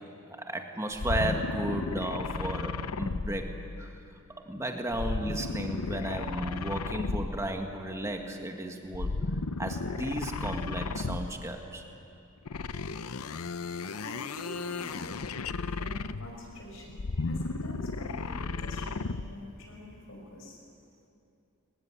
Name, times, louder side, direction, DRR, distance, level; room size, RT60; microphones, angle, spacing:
voice 1, 0.3-3.9 4.4-9.1 9.6-11.8, right 1 dB, 15° right, 3 dB, 1.9 m, -34 dB
sound 1, 0.9-4.0 4.9-7.6 8.9-11.5 12.5-16.4 16.9-19.4, left 3 dB, 85° left, 0.7 m, -34 dB
voice 2, 14.0-20.6, left 1 dB, 60° left, 0 dB, 6.4 m, -46 dB
23.0 x 20.0 x 9.9 m, 2.7 s
head